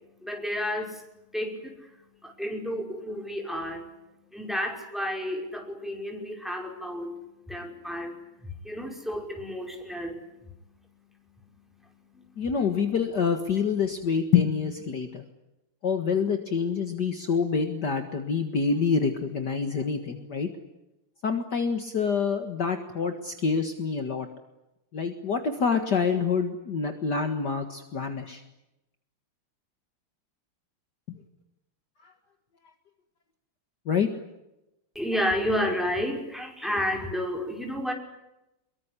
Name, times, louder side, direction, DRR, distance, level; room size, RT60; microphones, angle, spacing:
voice 1, 0.2-1.0 1.3-1.9 2.2-3.9 4.3-7.1 7.5-8.2 8.6-10.2 12.1-12.3 34.9-37.9, equal, ahead, 2 dB, 5.5 m, -31 dB
voice 2, 12.4-15.3 15.8-20.5 21.2-24.3 24.9-28.4 31.1-31.2 32.0-32.1 33.9-34.1, left 6 dB, 50° left, 6 dB, 2.2 m, -26 dB
24.5 x 23.0 x 9.8 m, 0.93 s
omnidirectional pair, 2.4 m